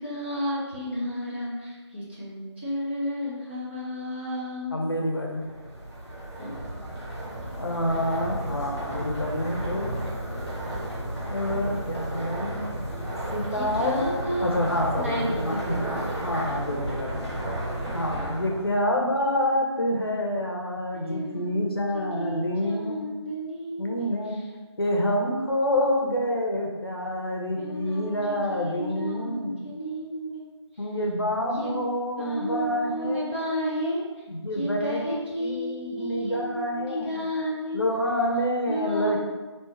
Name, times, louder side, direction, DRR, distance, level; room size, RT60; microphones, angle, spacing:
voice 1, 0.0-4.7 6.4-6.6 13.5-14.6 14.9-16.0 20.9-24.1 27.6-30.4 31.6-31.7 32.2-34.0 34.5-37.8 38.7-39.2, equal, 20° right, -8 dB, 0.9 m, -32 dB
voice 2, 4.7-5.4 7.6-9.9 11.3-12.6 13.3-17.5 17.9-23.1 23.8-24.4 24.8-29.6 30.8-33.3 34.3-35.0 35.4-37.3 37.7-39.2, left 1 dB, 55° left, 0 dB, 0.7 m, -27 dB
sound 1, 5.3-18.8, right 1 dB, 5° left, 1.1 m, -33 dB
4.4 x 3.1 x 3.3 m, 1.3 s
figure-of-eight pair, 165°, 15 cm